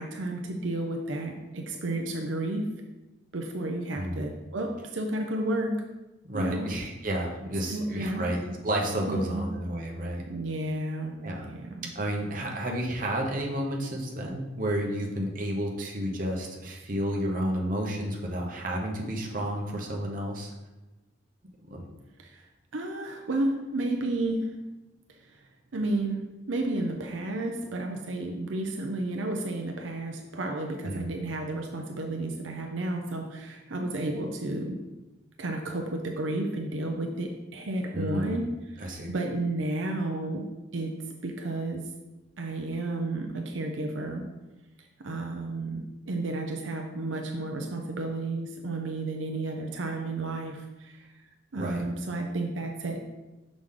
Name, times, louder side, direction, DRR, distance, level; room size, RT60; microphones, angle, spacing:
voice 1, 0.0-2.7 3.3-5.8 6.3-6.7 7.7-8.3 9.1-9.5 10.3-11.2 11.5-11.9 22.2-22.4 22.7-24.5 25.2-25.4 25.7-34.8 35.4-38.5 38.8-40.5 40.7-40.9 41.2-41.8 42.4-44.2 45.0-51.1 51.5-53.1, right 2 dB, 85° right, 3 dB, 0.6 m, -32 dB
voice 2, 6.2-10.2 11.2-11.5 11.9-20.5 21.7-21.9 30.8-31.0 37.9-38.4 38.8-39.1 51.5-51.8, equal, 45° right, 0 dB, 1.0 m, -31 dB
6.1 x 5.0 x 3.8 m, 1.1 s
head